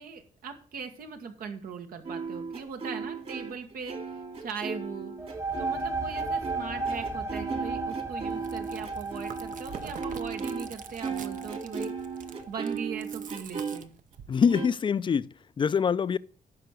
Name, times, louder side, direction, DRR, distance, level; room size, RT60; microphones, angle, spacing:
voice 1, 0.0-5.1 5.6-12.0 12.5-13.9, right 6 dB, 85° right, 1.7 m, -40 dB
sound 1, 2.0-10.7 11.0-13.8 14.5-14.7, right 5 dB, 50° right, 2.5 m, -36 dB
sound 2, 5.2-12.6, right 3 dB, 20° right, 0.7 m, -35 dB
Chewing mastication, 8.3-14.4, right 7 dB, 65° right, 0.8 m, -46 dB
voice 2, 14.3-16.2, left 6 dB, 35° left, 0.4 m, -25 dB
9.7 x 5.9 x 6.6 m
cardioid pair, 100°, 15 cm